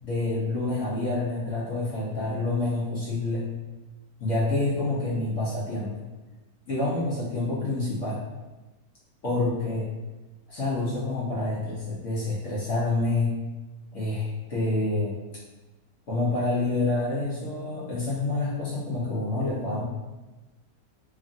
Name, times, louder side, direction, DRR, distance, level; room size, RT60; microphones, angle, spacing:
voice 1, 0.0-3.5 4.2-6.1 6.7-8.2 9.2-9.9 10.5-13.4 13.9-15.2 16.1-19.8, left 2 dB, 60° left, -7 dB, 0.8 m, -27 dB
2.9 x 2.4 x 2.6 m, 1.1 s
omnidirectional pair, 1.8 m